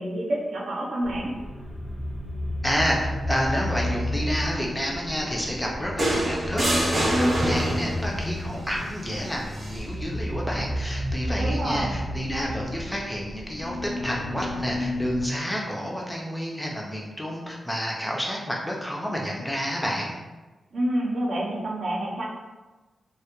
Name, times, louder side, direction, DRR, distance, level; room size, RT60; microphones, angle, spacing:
voice 1, 0.0-1.3 11.4-11.9 20.7-22.2, right 1 dB, 80° right, -3 dB, 0.5 m, -28 dB
sound 1, 1.0-15.3, left 1 dB, 50° left, 0.6 m, -32 dB
voice 2, 2.6-20.1, equal, 5° left, -2 dB, 0.3 m, -29 dB
sound 2, 6.0-8.1 9.5-9.7, right 1 dB, 35° right, 0.6 m, -25 dB
2.1 x 2.1 x 2.8 m, 1.2 s
wide cardioid pair, 140°, 0 cm